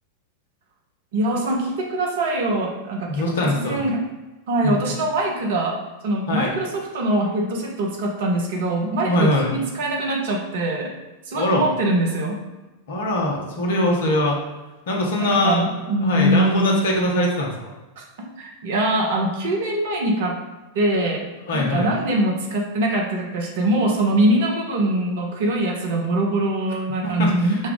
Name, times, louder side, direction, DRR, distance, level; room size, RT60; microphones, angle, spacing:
voice 1, 1.1-3.2 3.5-4.0 4.5-5.7 6.0-10.9 11.3-12.4 15.2-16.8 18.0-18.1 18.4-20.4 20.7-21.2 21.5-27.6, right 1 dB, 55° right, 0 dB, 0.8 m, -23 dB
voice 2, 3.0-3.8 4.6-4.9 6.3-6.5 9.0-9.5 11.3-11.7 12.9-14.4 14.9-15.7 16.0-17.7 21.5-21.9 27.0-27.6, left 1 dB, 60° left, -1 dB, 0.9 m, -22 dB
5.3 x 2.3 x 3.7 m, 1.1 s
figure-of-eight pair, 90°, 0 cm